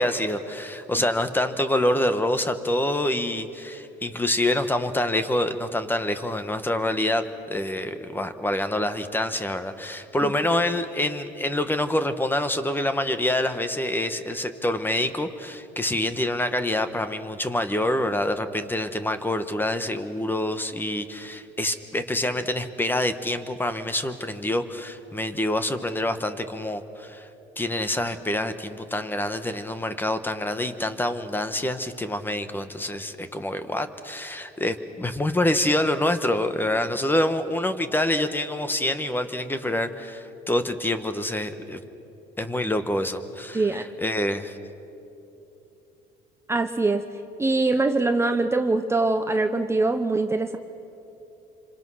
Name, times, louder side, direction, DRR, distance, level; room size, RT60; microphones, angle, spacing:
voice 1, 0.0-27.3 27.6-41.8 42.4-44.6, left 1 dB, 10° left, 10 dB, 1.3 m, -26 dB
voice 2, 43.5-43.9 46.5-47.0 47.4-50.6, right 3 dB, 15° right, 7 dB, 0.9 m, -23 dB
27.0 x 26.0 x 6.4 m, 3.0 s
cardioid pair, 115°, 18 cm